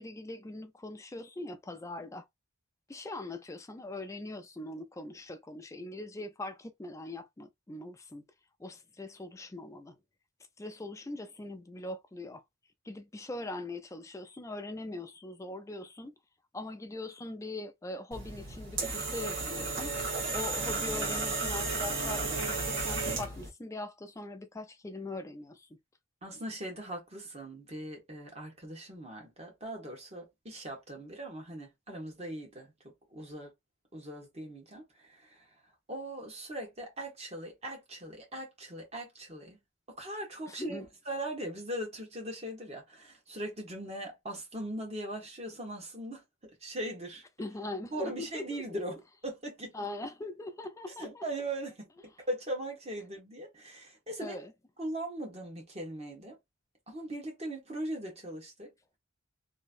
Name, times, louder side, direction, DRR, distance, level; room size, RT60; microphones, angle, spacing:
voice 1, 0.0-2.3 2.9-8.3 8.6-10.0 10.6-12.4 12.8-16.1 16.5-19.9 20.3-25.8 40.5-40.9 47.4-48.8 49.7-51.2 54.2-54.5, left 2 dB, 15° left, 0.4 m, -41 dB
sound 1, 18.1-23.5, right 3 dB, 60° right, 1.4 m, -33 dB
voice 2, 26.2-33.5 33.9-35.4 35.9-39.6 39.9-40.8 41.1-46.2 46.6-47.2 47.9-49.7 51.0-54.4 54.8-56.4 56.9-58.7, right 1 dB, 30° right, 1.4 m, -40 dB
3.0 x 2.7 x 2.5 m
head